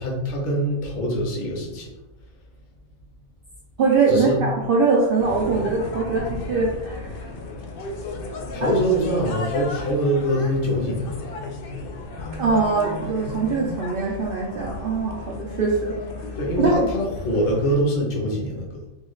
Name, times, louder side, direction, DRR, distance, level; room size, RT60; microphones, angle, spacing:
voice 1, 0.0-1.9 4.1-4.4 8.5-11.4 16.4-18.8, equal, 40° left, -1 dB, 0.8 m, -24 dB
voice 2, 3.8-7.2 8.6-8.7 12.4-15.9 16.6-16.8, right 4 dB, 75° right, -3 dB, 0.5 m, -22 dB
sound 1, 5.2-17.8, left 2 dB, 85° left, 0.4 m, -34 dB
3.7 x 2.3 x 3.1 m, 1.0 s
omnidirectional pair, 1.5 m